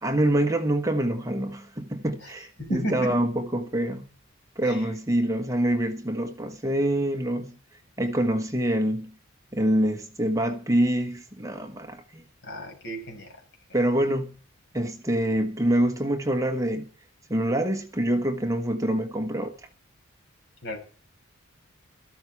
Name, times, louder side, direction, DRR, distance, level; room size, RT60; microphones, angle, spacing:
voice 1, 0.0-4.0 4.6-7.5 8.0-9.1 9.5-12.2 13.7-14.3 14.7-16.9 17.3-19.5, right 1 dB, 15° right, 1.2 m, -25 dB
voice 2, 2.6-3.2 4.7-4.9 12.4-13.4 20.6-20.8, right 1 dB, 55° left, 6.3 m, -33 dB
13.5 x 13.0 x 4.6 m
head